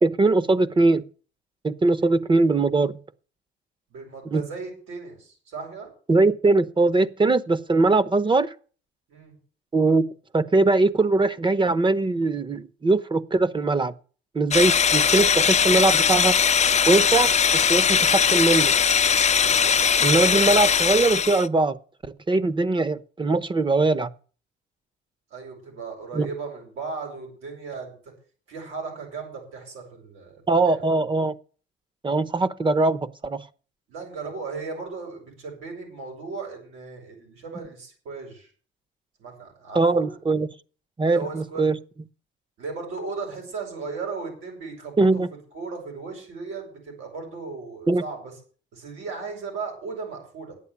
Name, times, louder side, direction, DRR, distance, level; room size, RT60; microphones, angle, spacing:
voice 1, 0.0-1.0 1.6-3.0 4.3-4.4 6.1-8.5 9.7-13.9 14.3-16.4 16.9-17.3 17.7-18.7 20.0-21.8 22.3-24.1 26.1-26.3 30.5-31.3 32.0-33.4 39.7-40.5 41.0-41.8 45.0-45.3 47.9-48.0, right 3 dB, 25° right, 0.9 m, -21 dB
voice 2, 3.9-5.9 9.1-9.3 17.1-17.3 17.7-18.5 19.4-20.1 25.3-28.0 28.5-30.8 33.9-38.5 39.2-40.2 41.0-41.7 42.6-48.3 48.7-50.5, right 4 dB, 90° right, 7.6 m, -37 dB
sound 1, 14.5-21.5, left 7 dB, 35° left, 0.6 m, -20 dB
10.5 x 8.5 x 8.4 m
cardioid pair, 90°, 20 cm